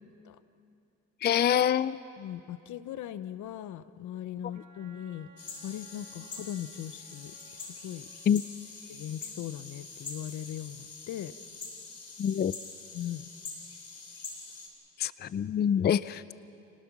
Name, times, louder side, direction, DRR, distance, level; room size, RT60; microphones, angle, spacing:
voice 1, 1.2-2.0 8.3-8.4 12.2-12.5 15.0-16.3, left 9 dB, 35° left, 17 dB, 0.4 m, -26 dB
voice 2, 2.2-5.3 5.6-8.1 8.9-11.3 12.9-13.3, left 11 dB, 75° left, 14 dB, 0.9 m, -39 dB
Wind instrument woodwind instrument, 4.5-8.4, right 2 dB, 75° right, 2.6 m, -59 dB
sound 1, 5.4-14.7, left 4 dB, 50° left, 3.8 m, -45 dB
29.0 x 19.0 x 6.1 m, 2.7 s
cardioid pair, 90°, 30 cm